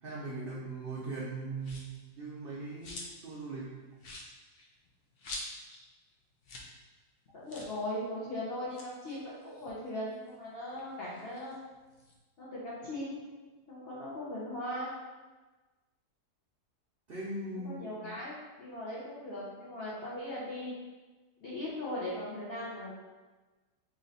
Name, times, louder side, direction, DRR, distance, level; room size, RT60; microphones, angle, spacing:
voice 1, 0.0-3.8 17.1-18.2, right 2 dB, 65° right, -6 dB, 0.5 m, -40 dB
sound 1, 1.6-2.0 2.5-3.3 3.6-3.7 4.0-5.8 6.1-6.2 6.4-6.7 7.0-7.1 7.5-7.8 8.6-10.3 10.7-12.2, left 2 dB, 85° left, 0.5 m, -46 dB
voice 2, 7.3-11.5 12.4-13.2 13.7-14.9 17.6-20.7 21.4-22.9, left 1 dB, 50° left, -7 dB, 0.8 m, -39 dB
3.2 x 2.6 x 3.9 m, 1.3 s
omnidirectional pair, 1.7 m